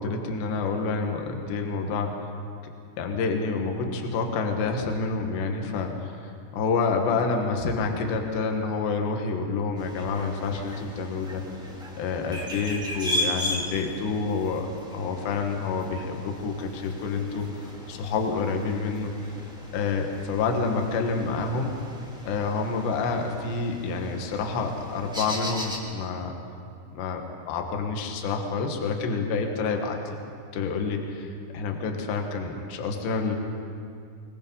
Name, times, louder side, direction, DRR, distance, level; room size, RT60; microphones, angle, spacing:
voice 1, 0.0-2.1 3.0-11.4 12.0-14.7 14.9-19.1 19.7-21.8 22.3-26.3 26.9-30.0 30.5-33.4, left 4 dB, 75° left, 3 dB, 3.7 m, -28 dB
sound 1, 9.8-25.8, left 1 dB, ahead, 1.4 m, -37 dB
23.0 x 21.0 x 5.5 m, 2.4 s
omnidirectional pair, 5.2 m